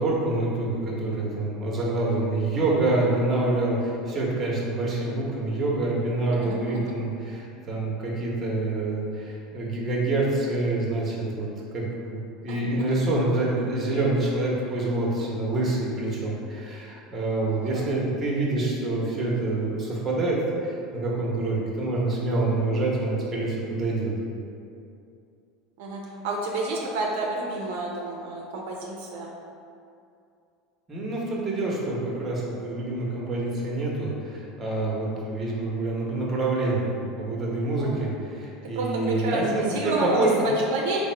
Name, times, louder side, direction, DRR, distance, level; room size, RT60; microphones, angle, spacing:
voice 1, 0.0-24.1 30.9-40.4, right 2 dB, 30° right, -4 dB, 0.9 m, -26 dB
voice 2, 6.3-6.9 12.5-12.6 17.7-17.8 25.8-29.3 38.8-41.0, right 2 dB, 80° right, -2 dB, 0.4 m, -29 dB
3.4 x 2.0 x 4.2 m, 2.5 s
supercardioid pair, 110°, 0 cm